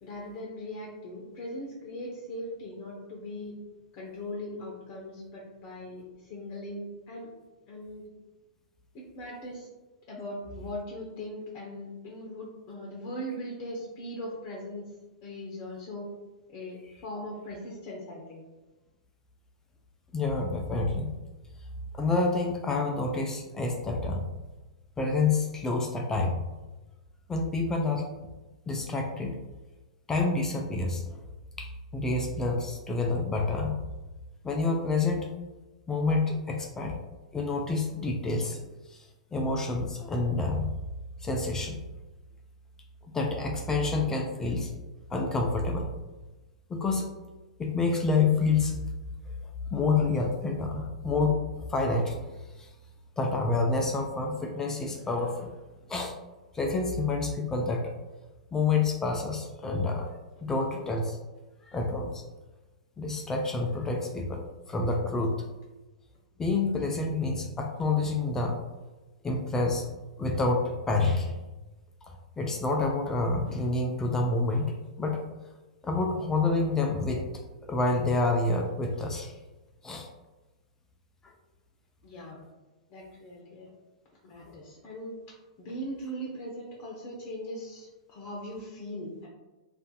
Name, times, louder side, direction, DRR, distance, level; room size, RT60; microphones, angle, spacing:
voice 1, 0.0-3.6 3.9-7.3 7.7-8.1 8.9-9.7 10.1-14.8 15.2-16.1 16.5-18.4 82.0-82.4 82.9-83.7 84.2-85.1 85.6-89.3, equal, 35° left, -2 dB, 0.7 m, -39 dB
voice 2, 20.1-21.1 21.9-24.3 25.0-26.4 27.3-28.0 28.7-29.4 30.1-31.2 31.6-33.8 34.4-35.3 35.9-37.0 37.3-38.6 38.9-39.1 39.3-40.7 41.2-41.8 43.1-44.7 45.1-45.9 46.7-47.1 47.6-48.8 49.7-51.4 51.7-52.2 52.6-52.7 53.2-55.5 55.9-56.1 56.5-57.9 58.5-61.2 61.7-62.2 63.0-64.4 64.7-65.4 66.4-68.6 69.2-69.9 70.2-71.3 72.0-75.2 75.8-77.3 77.7-79.3 79.8-80.1 84.5-84.6, left 3 dB, 15° left, 1 dB, 0.4 m, -28 dB
2.6 x 2.4 x 3.7 m, 1.1 s
figure-of-eight pair, 105°, 4 cm